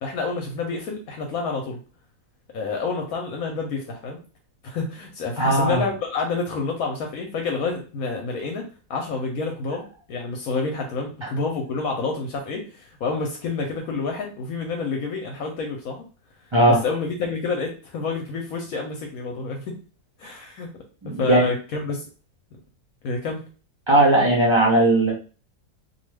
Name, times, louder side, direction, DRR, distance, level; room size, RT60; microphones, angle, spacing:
voice 1, 0.0-1.8 2.5-4.2 4.6-8.6 8.9-16.0 16.6-19.8 20.2-20.7 21.0-22.0 23.0-23.4, left 4 dB, 70° left, 2 dB, 1.0 m, -28 dB
voice 2, 5.4-5.8 11.2-11.3 16.5-16.8 21.0-21.5 23.9-25.1, right 1 dB, 40° right, -3 dB, 0.4 m, -18 dB
2.6 x 2.3 x 3.2 m, 0.36 s
omnidirectional pair, 1.7 m